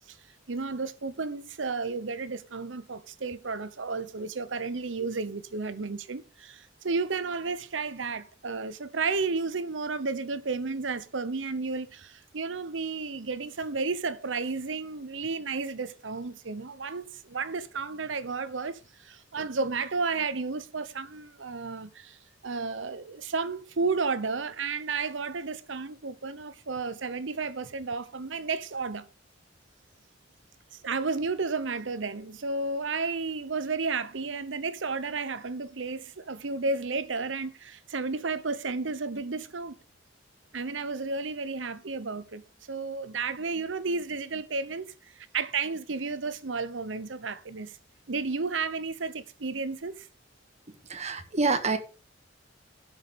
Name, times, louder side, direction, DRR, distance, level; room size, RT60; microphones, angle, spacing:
voice 1, 0.5-22.2 22.4-29.1 30.8-39.8 40.5-42.4 42.7-44.9 45.1-47.8 48.1-50.1, right 4 dB, 90° right, 0.9 m, -32 dB
voice 2, 50.9-51.8, right 4 dB, 35° right, 1.5 m, -26 dB
12.0 x 6.4 x 5.3 m
head